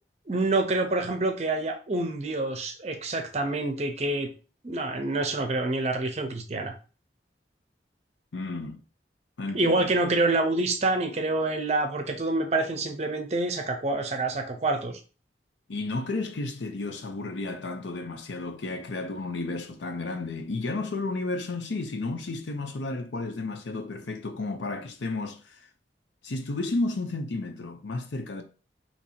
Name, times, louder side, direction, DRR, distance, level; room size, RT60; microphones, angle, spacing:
voice 1, 0.3-4.3 4.6-6.7 9.5-15.0, right 2 dB, 35° right, 0.6 m, -27 dB
voice 2, 8.3-8.8 9.4-9.9 15.7-25.4 26.2-28.4, left 2 dB, 90° left, 0.6 m, -32 dB
2.9 x 2.7 x 4.3 m
head